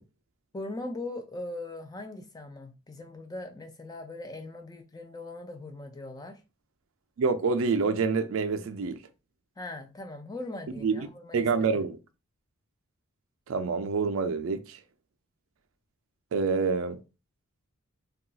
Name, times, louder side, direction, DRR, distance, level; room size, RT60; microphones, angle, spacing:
voice 1, 0.5-6.4 9.6-11.8, left 2 dB, 15° left, 0.4 m, -40 dB
voice 2, 7.2-9.0 10.8-11.1 11.3-12.0 13.5-14.8 16.3-17.0, right 4 dB, 65° right, 0.4 m, -27 dB
2.3 x 2.3 x 3.8 m
head